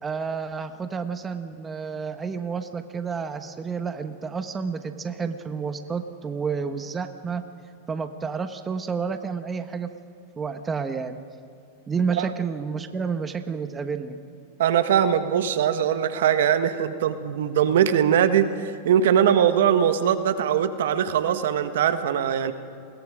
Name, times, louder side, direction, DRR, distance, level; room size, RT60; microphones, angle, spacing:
voice 1, 0.0-7.4 7.9-9.9 10.4-11.2 11.9-14.2, right 5 dB, 20° right, 8 dB, 1.3 m, -30 dB
voice 2, 14.6-22.5, right 9 dB, 75° right, 10 dB, 1.5 m, -21 dB
29.0 x 21.0 x 5.1 m, 2.5 s
hypercardioid pair, 125°, 0 cm